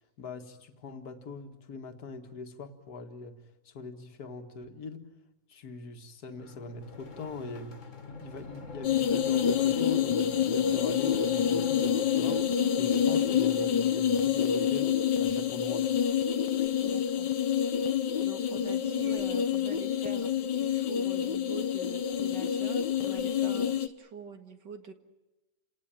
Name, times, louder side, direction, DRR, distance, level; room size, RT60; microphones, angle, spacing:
voice 1, 0.0-3.4 3.7-5.0 5.5-15.9, left 3 dB, 60° left, 6 dB, 2.2 m, -42 dB
sound 1, 6.4-15.6, left 3 dB, 45° left, 2.2 m, -45 dB
sound 2, 8.8-23.9, left 8 dB, 85° left, 1.7 m, -27 dB
voice 2, 16.8-17.3 18.2-24.9, right 5 dB, 90° right, 7 dB, 2.5 m, -45 dB
30.0 x 18.5 x 8.9 m, 1.1 s
omnidirectional pair, 1.8 m